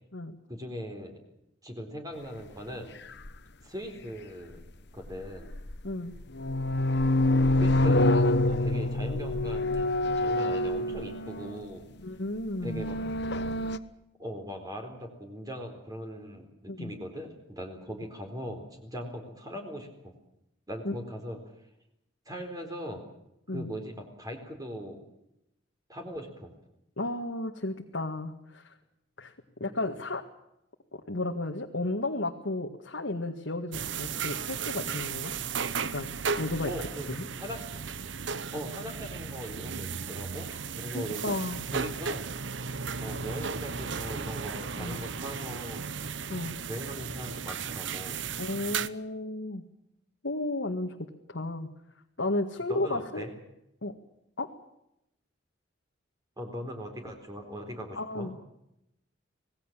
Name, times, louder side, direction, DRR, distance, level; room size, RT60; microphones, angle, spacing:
voice 1, 0.5-1.2 1.6-2.9 3.6-4.6 4.9-5.5 7.6-11.8 12.6-13.0 14.2-20.1 20.7-21.5 22.3-23.0 23.5-25.0 25.9-26.5 36.7-37.1 37.4-37.6 38.5-40.5 40.8-41.2 41.7-42.3 43.0-45.8 46.7-48.2 52.7-53.3 56.4-58.3, equal, 20° right, 3 dB, 4.2 m, -39 dB
sound 1, 3.2-3.3 5.1-5.8 6.2-11.6 12.4-13.8, left 1 dB, 65° left, 1.3 m, -26 dB
voice 2, 12.0-12.9 16.7-16.9 20.8-20.9 23.5-23.7 27.0-28.8 29.2-29.3 29.6-30.2 30.9-35.3 35.8-36.1 36.4-36.7 37.1-37.3 40.9-41.6 44.8-45.0 46.3-46.6 48.4-49.6 50.2-51.0 51.3-51.7 52.2-53.3 53.8-53.9 54.4-54.5 58.0-58.4, left 2 dB, 80° left, 1 dB, 1.9 m, -33 dB
sound 2, 33.7-48.9, right 6 dB, 75° right, 1.0 m, -35 dB
26.0 x 19.0 x 7.6 m, 0.83 s
head